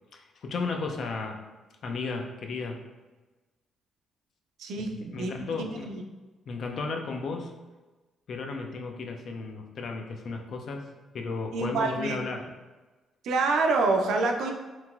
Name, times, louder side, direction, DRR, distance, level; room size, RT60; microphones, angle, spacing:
voice 1, 0.1-1.4 1.8-2.8 4.8-5.9 6.5-7.5 8.3-10.9 11.1-12.5, left 4 dB, 60° left, 3 dB, 0.4 m, -34 dB
voice 2, 4.6-5.3 5.9-6.0 11.5-12.2 13.2-14.5, right 3 dB, 75° right, 3 dB, 0.4 m, -26 dB
3.0 x 2.8 x 2.3 m, 1.2 s
cardioid pair, 90°, 0 cm